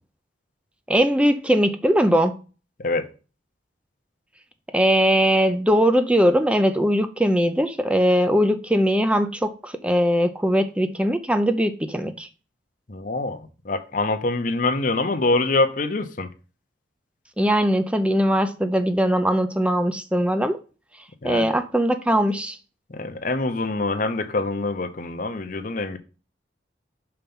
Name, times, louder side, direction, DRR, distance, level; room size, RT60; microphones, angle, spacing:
voice 1, 0.9-2.4 4.7-12.3 17.4-20.6 21.2-22.6, equal, 5° right, 0.5 m, -20 dB
voice 2, 12.9-16.3 21.2-21.6 22.9-26.0, left 2 dB, 45° left, 0.8 m, -25 dB
5.8 x 4.4 x 5.3 m
head